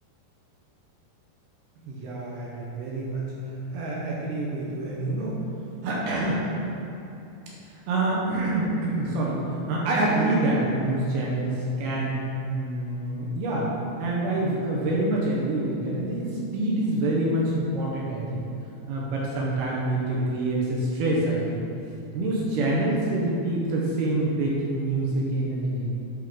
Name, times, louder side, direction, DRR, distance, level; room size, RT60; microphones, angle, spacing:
voice 1, 1.8-3.3 3.7-5.4 5.8-6.4 7.9-12.1 12.5-13.7 14.0-18.4 18.9-21.6 22.1-25.9, right 2 dB, 75° right, -5 dB, 2.6 m, -26 dB
10.5 x 3.7 x 3.7 m, 2.8 s
omnidirectional pair, 4.9 m